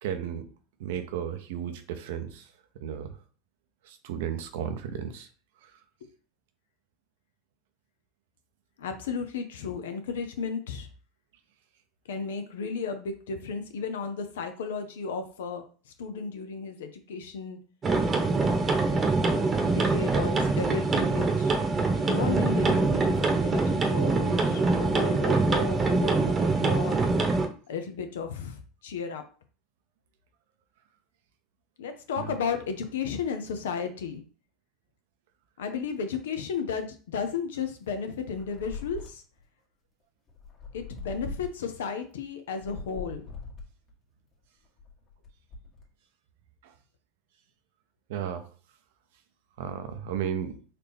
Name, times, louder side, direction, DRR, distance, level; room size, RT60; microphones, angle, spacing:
voice 1, 0.0-0.5 0.8-2.5 2.8-3.2 3.8-5.3 5.6-5.7 32.2-32.3 46.6-46.7 48.1-48.5 49.6-50.6, right 8 dB, 75° right, 9 dB, 0.6 m, -34 dB
voice 2, 8.8-10.9 12.1-17.6 19.7-21.5 22.1-27.0 27.7-29.2 31.8-34.2 35.6-39.2 40.7-43.3, left 5 dB, 85° left, 7 dB, 0.6 m, -34 dB
sound 1, 17.8-27.5, right 3 dB, 30° right, 0.9 m, -24 dB
sound 2, 38.3-39.4 40.3-41.7 42.5-43.9 44.6-45.9, left 3 dB, 45° left, 1.4 m, -41 dB
4.1 x 2.7 x 3.5 m, 0.39 s
hypercardioid pair, 95°, 0 cm